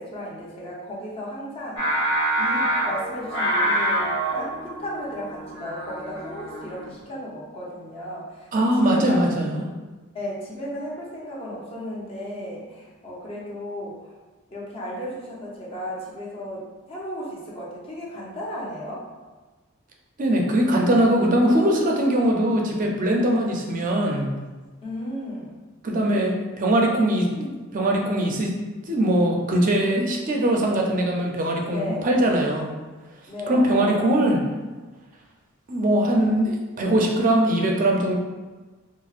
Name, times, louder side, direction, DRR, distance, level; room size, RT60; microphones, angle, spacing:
voice 1, 0.0-1.9 2.4-8.5 8.8-9.3 10.1-14.0 14.5-16.6 16.9-19.0 24.8-25.6 31.7-32.1 33.3-34.1, equal, 30° left, -5 dB, 0.7 m, -34 dB
Singing, 1.8-7.0, right 1 dB, 70° left, 1.2 m, -26 dB
voice 2, 8.5-9.6 20.2-24.3 25.8-28.5 28.9-32.7 33.5-34.4 35.7-38.2, right 1 dB, 40° right, 0 dB, 0.5 m, -21 dB
4.2 x 2.0 x 2.4 m, 1.3 s
head